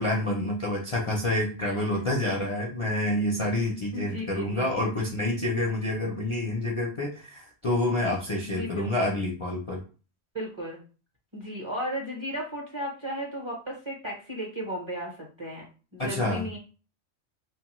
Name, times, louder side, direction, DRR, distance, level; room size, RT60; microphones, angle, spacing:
voice 1, 0.0-9.8 16.0-16.5, left 1 dB, 40° left, -2 dB, 0.5 m, -28 dB
voice 2, 3.9-4.7 8.4-9.1 10.3-10.8 11.3-15.6 15.9-16.6, equal, 30° right, -2 dB, 0.6 m, -35 dB
2.9 x 2.2 x 3.0 m, 0.36 s
omnidirectional pair, 1.1 m